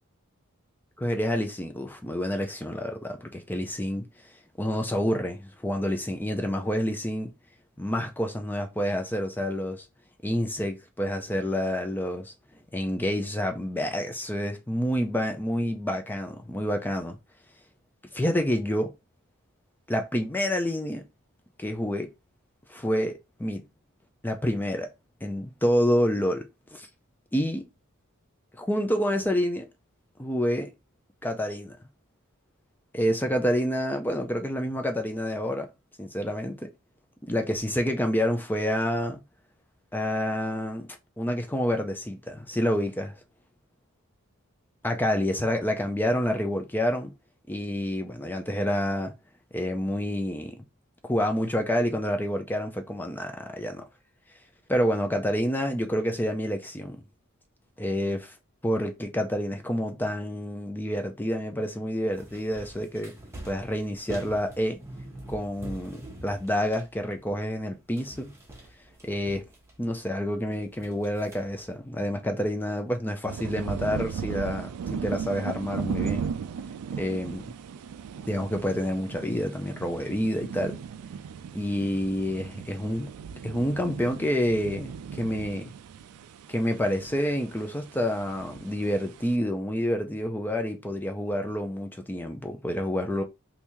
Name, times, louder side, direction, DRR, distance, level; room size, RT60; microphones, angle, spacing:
voice 1, 1.0-4.0 4.6-7.3 7.8-9.8 10.2-12.3 12.7-17.2 18.1-18.9 19.9-21.0 21.6-22.1 22.7-23.6 24.2-24.9 25.2-26.9 27.3-27.7 28.6-29.7 30.2-30.7 31.2-31.8 32.9-35.7 36.0-36.7 37.2-39.2 39.9-40.9 41.2-43.2 44.8-47.1 47.5-49.1 49.5-50.6 51.1-53.8 54.7-57.0 57.8-58.3 58.6-63.1 63.5-64.8 65.3-68.3 69.0-69.5 69.8-76.3 77.0-77.5 78.3-80.8 81.5-83.1 83.4-85.7 86.5-93.2, equal, 10° left, 0.4 m, -28 dB
sound 1, 62.1-67.7 68.0-70.1 70.5-71.8, right 1 dB, 10° right, 0.8 m, -45 dB
sound 2, 73.3-89.3, right 6 dB, 85° right, 0.3 m, -37 dB
3.5 x 2.7 x 2.9 m
head